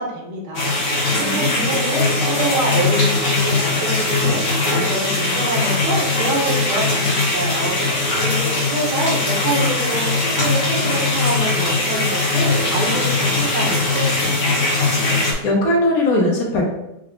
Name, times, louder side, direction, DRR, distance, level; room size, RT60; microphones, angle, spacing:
voice 1, 0.0-4.4 4.7-7.8 8.2-14.6, right 2 dB, 85° right, 0 dB, 1.5 m, -26 dB
sound 1, 0.5-15.3, left 3 dB, 45° left, 0.9 m, -20 dB
voice 2, 1.1-1.6 15.0-16.6, left 1 dB, 65° left, -1 dB, 1.3 m, -20 dB
4.8 x 2.2 x 3.5 m, 0.87 s
omnidirectional pair, 1.7 m